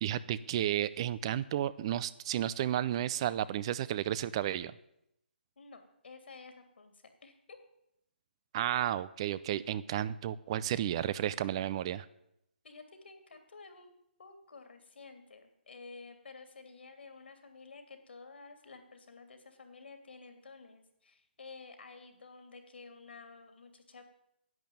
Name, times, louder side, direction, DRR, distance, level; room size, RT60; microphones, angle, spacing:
voice 1, 0.0-4.7 8.5-12.1, right 11 dB, 30° right, 18 dB, 0.5 m, -32 dB
voice 2, 5.6-7.6 12.6-13.9 14.2-24.0, left 4 dB, 75° left, 7 dB, 3.0 m, -52 dB
11.0 x 8.5 x 9.2 m, 0.80 s
hypercardioid pair, 155°, 6 cm